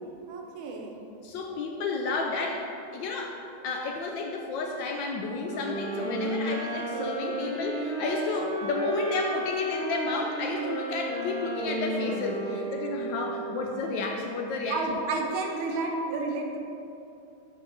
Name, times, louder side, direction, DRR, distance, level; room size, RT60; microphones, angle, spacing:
voice 1, 0.3-1.0 14.7-16.6, right 3 dB, 75° right, 1 dB, 1.5 m, -31 dB
voice 2, 1.2-2.7 2.9-3.4 3.6-15.0, left 3 dB, 75° left, 2 dB, 1.1 m, -32 dB
sound 1, 5.5-13.7, right 1 dB, 30° right, 0.4 m, -32 dB
4.6 x 4.5 x 5.9 m, 2.7 s
omnidirectional pair, 2.3 m